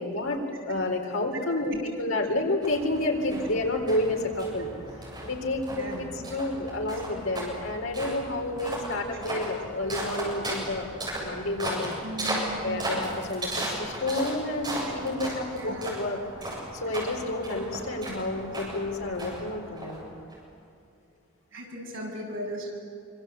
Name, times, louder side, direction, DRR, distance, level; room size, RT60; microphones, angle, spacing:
voice 1, 0.0-4.7 5.2-10.9 11.2-12.0 12.6-16.2 16.8-20.2, left 2 dB, 80° left, 2 dB, 4.0 m, -30 dB
sound 1, 2.6-20.3, right 1 dB, 20° right, 7.8 m, -36 dB
voice 2, 5.7-6.4 12.0-12.9 13.2-13.3 14.8-14.9 15.6-15.9 21.5-22.7, equal, 65° right, -2 dB, 7.8 m, -37 dB
26.0 x 26.0 x 8.3 m, 2.6 s
head